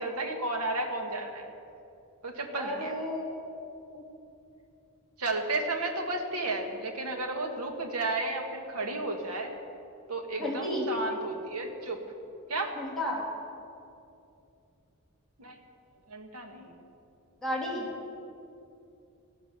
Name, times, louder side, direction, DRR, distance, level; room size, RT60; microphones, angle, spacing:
voice 1, 0.0-1.5 2.2-2.9 5.2-9.5 10.1-12.0 12.5-12.7 15.4-15.6 16.1-16.8, right 2 dB, 80° right, 3 dB, 1.8 m, -33 dB
voice 2, 2.5-4.0 10.4-10.9 12.8-13.2 17.4-17.9, left 1 dB, ahead, -6 dB, 3.4 m, -33 dB
15.5 x 12.0 x 6.8 m, 2.6 s
head